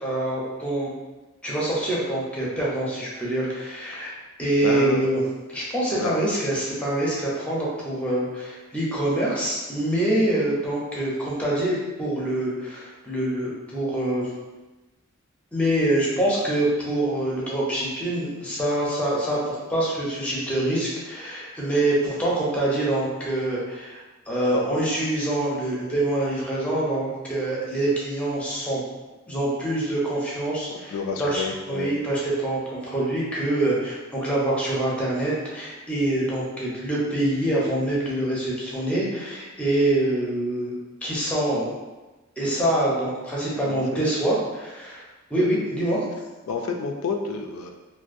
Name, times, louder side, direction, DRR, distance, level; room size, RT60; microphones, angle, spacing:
voice 1, 0.0-0.9 1.4-4.1 4.4-5.2 5.5-14.3 15.5-24.0 24.3-28.8 29.3-40.7 41.0-41.7 42.4-46.0, right 1 dB, 5° left, -6 dB, 0.5 m, -25 dB
voice 2, 4.6-5.0 5.9-6.1 30.7-31.9 43.6-44.0 45.4-45.5 46.5-47.7, left 4 dB, 75° left, 4 dB, 0.3 m, -30 dB
2.5 x 2.2 x 2.5 m, 1.2 s
head